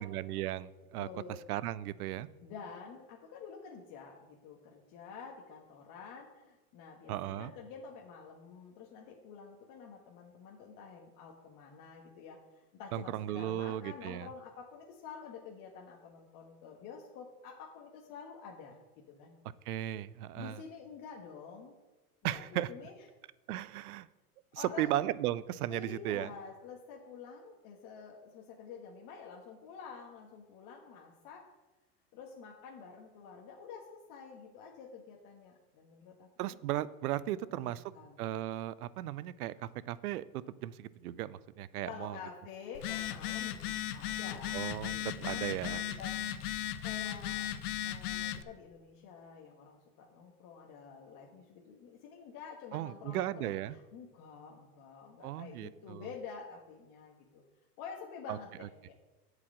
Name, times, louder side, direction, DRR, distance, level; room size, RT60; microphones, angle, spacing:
voice 1, 0.0-2.3 7.1-7.5 12.9-14.3 19.7-20.6 22.2-22.7 23.5-24.1 24.5-26.3 36.4-37.8 38.2-42.2 44.5-45.8 52.7-53.8 55.2-56.1 58.3-58.4, right 13 dB, 75° right, 18 dB, 0.6 m, -36 dB
voice 2, 1.0-1.4 2.4-18.8 19.1-19.3 20.3-21.8 22.2-22.9 24.5-25.0 25.7-31.5 32.1-36.6 37.3-38.2 41.9-46.4 46.8-47.5 47.8-57.4 57.8-58.9, left 6 dB, 45° left, 0 dB, 1.4 m, -49 dB
Telephone, 42.7-48.4, left 11 dB, 80° left, 0.7 m, -37 dB
8.4 x 4.9 x 7.6 m, 1.2 s
hypercardioid pair, 105°, 44 cm